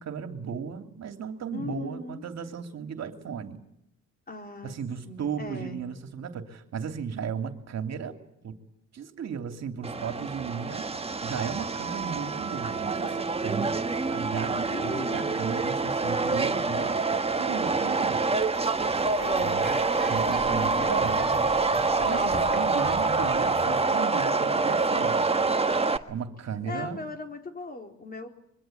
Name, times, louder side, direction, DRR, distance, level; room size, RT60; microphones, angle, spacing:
voice 1, 0.0-3.6 4.6-8.2 8.4-8.5 8.9-10.9 11.2-13.8 14.1-17.0 17.4-18.3 19.4-19.8 20.1-21.2 21.8-25.3 26.1-27.0, right 7 dB, 60° right, 6 dB, 2.9 m, -35 dB
voice 2, 1.5-2.2 4.3-4.8 5.0-5.8 14.6-15.4 19.2-19.6 20.5-21.3 22.0-22.5 26.7-28.3, left 2 dB, 30° left, 4 dB, 4.2 m, -38 dB
Subway metro underground, 9.8-26.0, right 3 dB, 20° right, 1.5 m, -26 dB
sound 1, 18.5-23.9, right 2 dB, ahead, 4.9 m, -40 dB
24.5 x 23.5 x 9.3 m, 0.78 s
cardioid pair, 90°, 30 cm